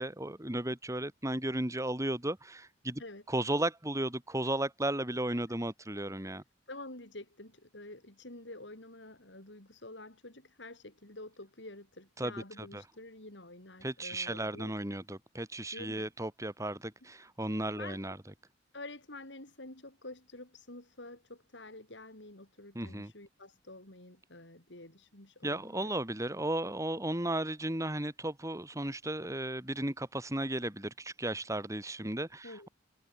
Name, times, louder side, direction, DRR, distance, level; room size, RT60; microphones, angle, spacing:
voice 1, 0.0-3.0 3.3-6.4 12.2-12.3 12.7-12.8 13.8-18.2 22.7-23.1 25.4-32.7, right 1 dB, 15° right, 3.0 m, -35 dB
voice 2, 6.7-14.7 15.7-16.1 17.8-18.2 18.7-25.9 32.4-32.7, left 2 dB, 70° left, 5.8 m, -48 dB
head